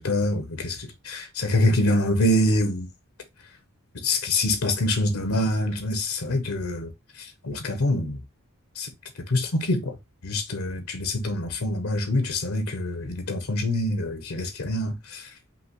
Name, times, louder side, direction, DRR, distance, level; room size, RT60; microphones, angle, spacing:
voice 1, 0.0-2.9 4.0-6.9 7.2-8.2 8.8-8.9 9.3-9.9 10.2-15.3, left 1 dB, 70° left, 0.8 m, -25 dB
5.4 x 2.8 x 3.0 m
head